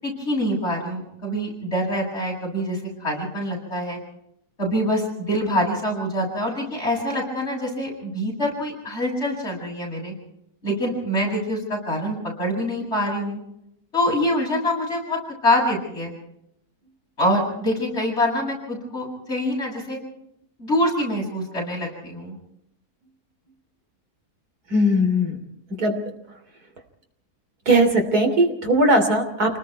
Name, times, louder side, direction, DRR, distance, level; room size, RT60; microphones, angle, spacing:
voice 1, 0.0-4.0 4.6-10.1 10.6-13.4 13.9-16.1 17.2-20.0 20.6-22.4, left 1 dB, 45° left, -2 dB, 8.5 m, -25 dB
voice 2, 24.7-25.4 25.8-26.0 27.7-29.6, right 1 dB, 80° right, 4 dB, 3.7 m, -19 dB
28.5 x 19.5 x 4.7 m, 0.78 s
omnidirectional pair, 1.6 m